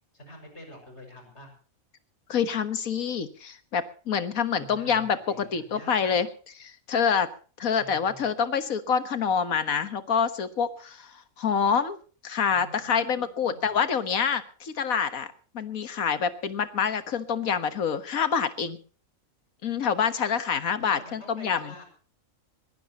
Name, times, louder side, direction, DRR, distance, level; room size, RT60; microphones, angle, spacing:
voice 1, 0.1-1.5 4.5-5.4 5.7-6.2 7.8-8.3 12.5-13.7 20.8-21.8, left 1 dB, 50° left, 4 dB, 6.4 m, -47 dB
voice 2, 2.3-6.3 6.6-7.3 7.6-12.0 12.2-18.8 19.6-21.7, left 7 dB, 85° left, 11 dB, 1.8 m, -27 dB
21.5 x 17.5 x 3.0 m, 0.40 s
omnidirectional pair, 1.4 m